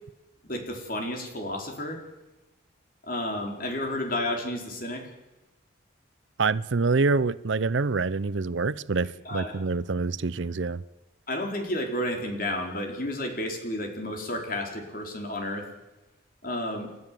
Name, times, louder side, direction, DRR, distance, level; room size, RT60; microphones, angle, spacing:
voice 1, 0.5-2.0 3.0-5.1 9.2-9.6 11.3-15.7 16.4-16.9, left 1 dB, 45° left, 4.4 m, -31 dB
voice 2, 6.4-10.8, right 4 dB, 70° right, 0.6 m, -26 dB
30.0 x 13.0 x 7.6 m
head